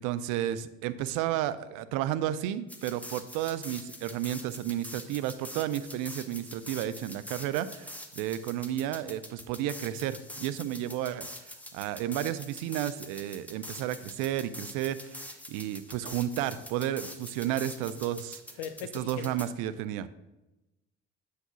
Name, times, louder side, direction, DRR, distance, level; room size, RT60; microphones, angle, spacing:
voice 1, 0.0-18.4 18.9-20.1, right 12 dB, 60° right, 14 dB, 0.5 m, -32 dB
sound 1, 2.7-19.5, left 1 dB, 5° left, 0.8 m, -45 dB
voice 2, 18.6-19.3, left 9 dB, 65° left, 10 dB, 0.6 m, -39 dB
7.8 x 2.8 x 5.7 m, 0.98 s
figure-of-eight pair, 50°, 36 cm